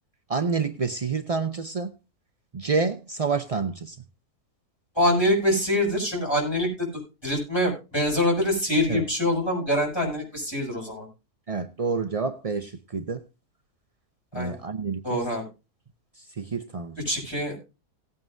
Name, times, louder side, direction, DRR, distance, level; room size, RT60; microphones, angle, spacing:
voice 1, 0.3-1.9 2.5-4.0 8.9-9.1 11.5-13.2 14.3-15.2 16.2-17.0, right 4 dB, 70° right, 8 dB, 0.3 m, -28 dB
voice 2, 4.9-11.1 14.3-14.5 15.0-15.4 17.0-17.6, left 1 dB, 15° left, -2 dB, 6.6 m, -25 dB
18.5 x 9.2 x 2.6 m, 0.29 s
omnidirectional pair, 1.6 m